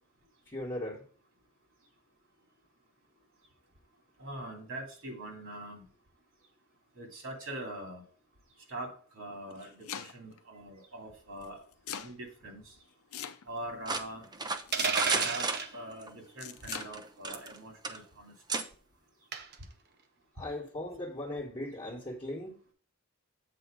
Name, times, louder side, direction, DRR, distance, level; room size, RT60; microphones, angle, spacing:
voice 1, 0.5-1.0 20.3-22.7, left 1 dB, 20° left, 1.3 m, -38 dB
voice 2, 4.2-5.8 7.0-8.0 8.7-11.6 12.0-12.6 13.5-14.2 15.1-15.5 15.7-18.3, right 1 dB, 70° right, 2.7 m, -43 dB
Domestic sounds home sounds, 9.3-10.4 11.4-12.1 13.1-13.7 14.7-15.3 16.4-16.9, left 9 dB, 90° left, 0.6 m, -41 dB
sound 1, 13.9-16.1 16.6-17.6 17.8-18.0 18.5-18.7, right 3 dB, 20° right, 0.6 m, -33 dB
sound 2, 14.7-15.7 17.3-17.6 19.3-19.6, right 5 dB, 50° right, 0.8 m, -31 dB
7.8 x 4.2 x 5.1 m
head